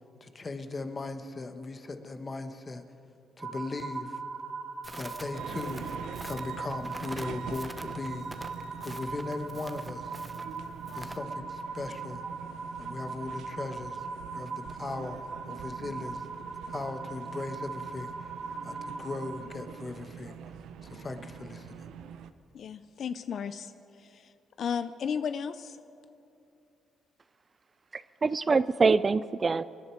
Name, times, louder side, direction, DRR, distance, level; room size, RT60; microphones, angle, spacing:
voice 1, 0.2-2.8 3.4-4.2 4.9-5.9 6.2-8.3 8.8-10.2 10.9-12.2 12.8-14.1 14.3-16.3 16.7-18.3 18.6-20.4 20.8-21.9, left 3 dB, 30° left, 8 dB, 1.2 m, -38 dB
sound 1, 3.4-19.5, right 4 dB, 60° right, 2.2 m, -40 dB
Crackle, 4.8-11.2, right 2 dB, 15° right, 0.9 m, -46 dB
sound 2, 5.3-22.3, right 8 dB, 80° right, 0.6 m, -45 dB
voice 2, 22.5-23.7 24.0-24.3 24.6-25.8, left 7 dB, 60° left, 12 dB, 0.5 m, -34 dB
voice 3, 27.9-29.6, right 4 dB, 35° right, 16 dB, 0.4 m, -25 dB
26.5 x 10.5 x 4.6 m, 2.7 s
cardioid pair, 90°, 0 cm